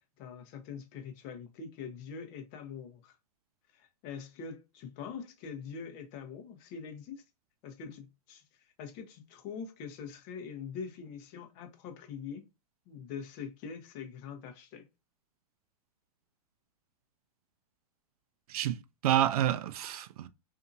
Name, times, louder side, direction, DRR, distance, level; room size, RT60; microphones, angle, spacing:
voice 1, 0.0-3.2 3.7-7.2 7.6-12.4 12.9-14.8, left 6 dB, 40° left, 0.9 m, -44 dB
voice 2, 18.5-20.3, right 11 dB, 70° right, 0.4 m, -29 dB
2.7 x 2.5 x 2.6 m
hypercardioid pair, 130°, 20 cm